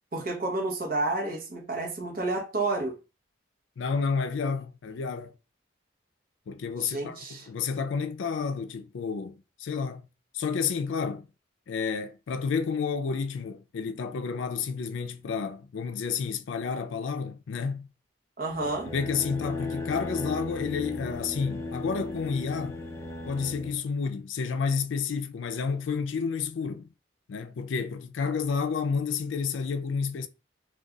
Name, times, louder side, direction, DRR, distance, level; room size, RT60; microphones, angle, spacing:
voice 1, 0.1-2.9 6.8-7.5 18.4-18.9, right 2 dB, 50° right, 0.7 m, -30 dB
voice 2, 3.8-5.3 6.5-10.1 10.3-11.3 11.7-17.9 18.9-22.8 23.3-26.9 27.3-30.3, left 5 dB, 85° left, 0.4 m, -30 dB
sound 1, 18.5-23.8, left 3 dB, 15° left, 0.4 m, -36 dB
2.3 x 2.3 x 3.7 m
head